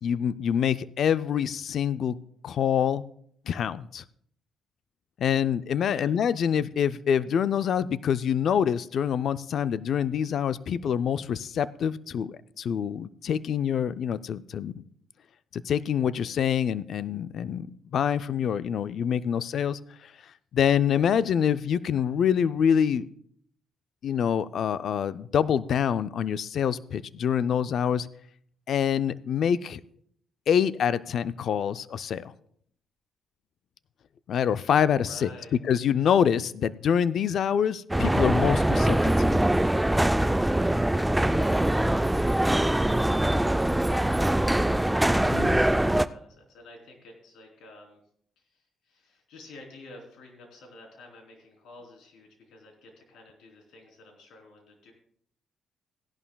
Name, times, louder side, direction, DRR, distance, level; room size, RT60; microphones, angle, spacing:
voice 1, 0.0-2.2 2.4-3.0 3.5-4.0 5.2-14.8 15.5-17.7 17.9-20.1 20.5-23.1 24.0-28.1 28.7-29.8 30.5-32.3 34.3-39.4 45.3-45.6, left 8 dB, 65° left, 14 dB, 0.4 m, -26 dB
voice 2, 35.0-35.6 45.5-48.0 48.4-54.9, left 2 dB, 80° left, 1 dB, 3.4 m, -50 dB
sound 1, 37.9-46.1, right 1 dB, 5° right, 0.4 m, -23 dB
17.0 x 11.0 x 2.3 m, 0.65 s
cardioid pair, 90°, 0 cm